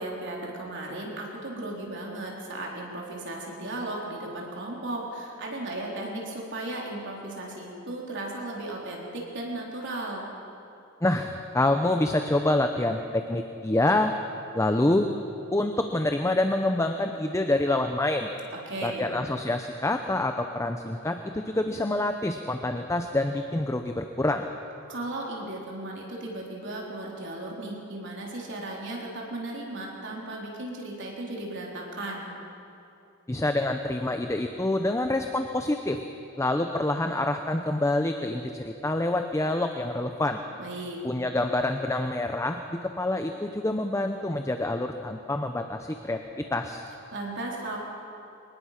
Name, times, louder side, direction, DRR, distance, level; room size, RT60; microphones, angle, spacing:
voice 1, 0.0-10.3 18.7-19.2 24.9-32.3 40.6-41.0 47.1-47.8, right 2 dB, 60° right, -2 dB, 3.9 m, -36 dB
voice 2, 11.0-14.1 14.5-15.1 15.5-18.3 18.8-24.5 33.3-36.0 36.4-40.4 41.0-46.8, left 2 dB, 15° left, 6 dB, 0.7 m, -27 dB
23.5 x 20.0 x 5.9 m, 2.7 s
head